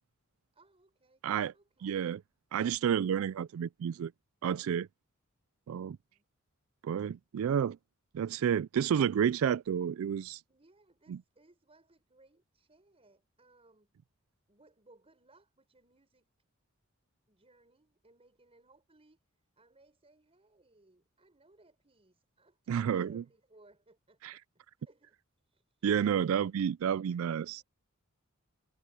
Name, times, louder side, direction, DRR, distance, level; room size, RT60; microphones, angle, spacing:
voice 1, 0.5-1.2 1.5-2.0 6.1-6.3 10.5-13.9 14.5-16.3 17.3-24.4 24.8-25.9 27.3-27.6, right 2 dB, 30° right, 5.6 m, -65 dB
voice 2, 1.8-2.2 2.5-4.1 4.4-4.9 5.7-6.0 6.8-7.8 8.1-10.4 11.1-11.2 22.7-23.2 24.2-24.3 25.8-27.6, right 8 dB, 75° right, 0.3 m, -30 dB
head